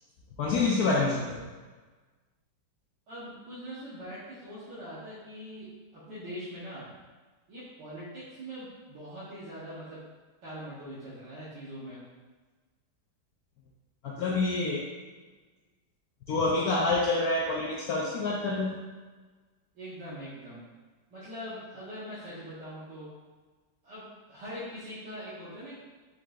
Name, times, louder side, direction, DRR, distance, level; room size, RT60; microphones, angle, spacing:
voice 1, 0.4-1.4 14.0-14.9 16.3-18.7, left 3 dB, 70° left, -3 dB, 0.9 m, -27 dB
voice 2, 3.1-5.7 6.1-6.9 7.5-10.0 10.4-12.0 19.7-20.6 21.1-23.1 23.8-24.0 24.3-25.7, equal, 70° right, -11 dB, 1.7 m, -42 dB
4.9 x 4.5 x 2.4 m, 1.3 s
omnidirectional pair, 1.9 m